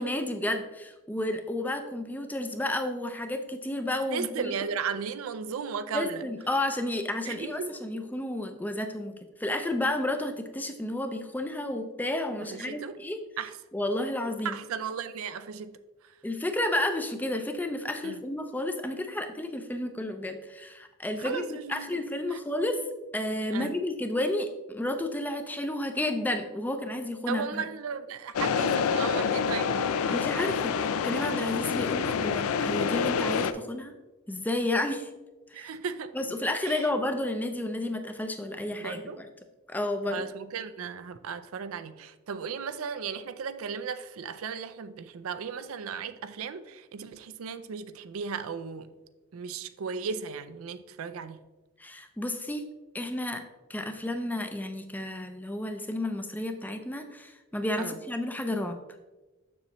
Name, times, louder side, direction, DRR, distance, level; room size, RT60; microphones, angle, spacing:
voice 1, 0.0-4.5 5.9-13.2 13.7-14.6 16.2-22.8 23.1-27.6 30.1-33.9 34.3-35.1 35.5-35.7 36.1-39.3 39.7-40.3 51.8-52.6 52.9-53.4 53.7-58.8, left 1 dB, 10° left, 0.4 m, -31 dB
voice 2, 4.1-6.2 7.3-8.0 12.4-13.0 13.4-13.5 14.4-15.8 18.0-18.2 21.2-22.0 22.3-22.4 23.5-23.8 27.3-30.2 35.5-36.1 36.6-36.9 38.8-39.2 40.1-48.9 49.3-51.4 57.8-58.0, right 6 dB, 80° right, 0.4 m, -36 dB
sound 1, 28.3-33.5, left 6 dB, 85° left, 0.4 m, -27 dB
6.9 x 6.7 x 3.0 m
head